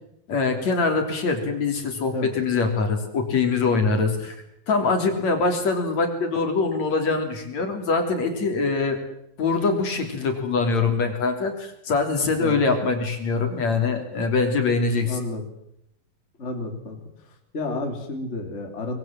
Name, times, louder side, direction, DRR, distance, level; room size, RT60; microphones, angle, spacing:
voice 1, 0.3-4.4 4.7-9.0 9.4-15.2, left 4 dB, 50° left, 5 dB, 4.5 m, -23 dB
voice 2, 15.0-15.4 16.4-17.0 17.5-19.0, left 2 dB, 20° left, 4 dB, 3.0 m, -31 dB
24.5 x 22.5 x 7.7 m, 0.78 s
omnidirectional pair, 4.1 m